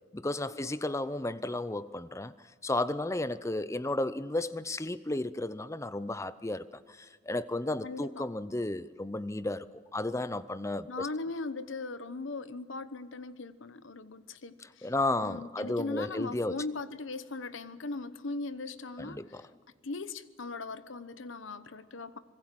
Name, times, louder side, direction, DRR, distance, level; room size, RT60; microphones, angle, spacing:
voice 1, 0.1-2.3 2.6-9.7 9.9-11.1 14.8-16.5 19.0-19.4, left 2 dB, 15° left, 0.6 m, -33 dB
voice 2, 7.8-8.3 10.9-14.9 15.2-19.5 19.8-22.2, left 3 dB, 70° left, 1.0 m, -39 dB
25.5 x 20.5 x 7.6 m
head